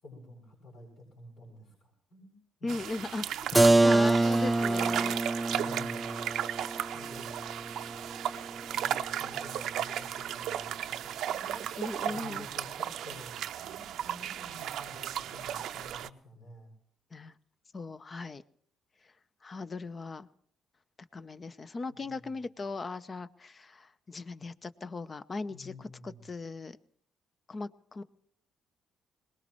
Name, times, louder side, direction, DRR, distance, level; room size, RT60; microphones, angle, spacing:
voice 1, 0.0-2.7 5.5-6.1 6.9-7.3 8.7-11.7 12.0-16.7 22.0-22.3 25.5-26.2, left 2 dB, 80° left, -4 dB, 6.6 m, -50 dB
voice 2, 2.6-5.2 11.8-12.5 17.1-17.3 17.7-18.4 19.4-20.3 21.1-26.8 27.5-28.0, left 3 dB, 35° left, 14 dB, 0.8 m, -38 dB
sound 1, 2.7-16.1, right 10 dB, 80° right, 0.6 m, -35 dB
Keyboard (musical), 3.5-9.1, right 2 dB, 15° right, 0.6 m, -27 dB
22.0 x 20.0 x 3.1 m, 0.67 s
cardioid pair, 90°, 0 cm